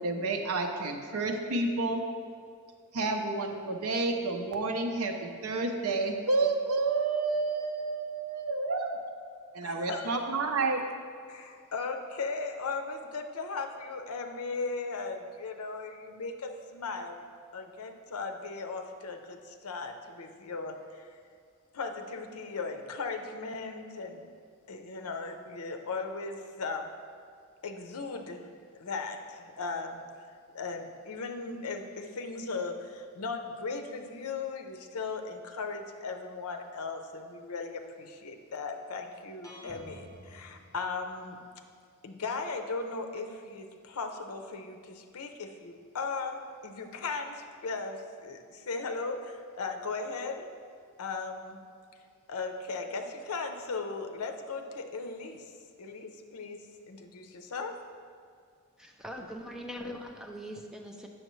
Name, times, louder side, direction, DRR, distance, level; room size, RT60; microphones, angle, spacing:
voice 1, 0.0-2.0 2.9-8.9 9.5-10.8, right 3 dB, 75° right, 4 dB, 0.6 m, -30 dB
voice 2, 9.6-10.1 11.3-17.2 17.5-20.8 21.7-24.2 24.7-26.9 27.6-28.4 28.8-29.2 29.6-30.0 30.5-41.4 42.0-50.4 51.0-51.6 52.3-55.4 55.8-56.6 56.9-57.7, left 4 dB, 80° left, 5 dB, 0.6 m, -37 dB
sound 1, 39.4-41.4, equal, 15° left, 0.8 m, -50 dB
voice 3, 58.8-61.1, equal, 5° right, 1 dB, 0.4 m, -41 dB
7.8 x 6.3 x 3.1 m, 2.2 s
head